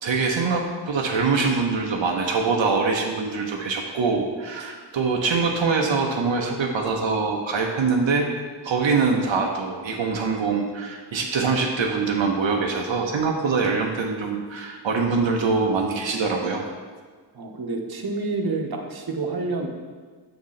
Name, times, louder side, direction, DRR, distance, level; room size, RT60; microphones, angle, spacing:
voice 1, 0.0-8.3 8.6-16.6, right 4 dB, 90° right, 1 dB, 0.7 m, -24 dB
voice 2, 17.3-19.7, right 3 dB, 55° right, 2 dB, 0.9 m, -28 dB
7.0 x 3.8 x 5.7 m, 1.5 s
wide cardioid pair, 65°, 44 cm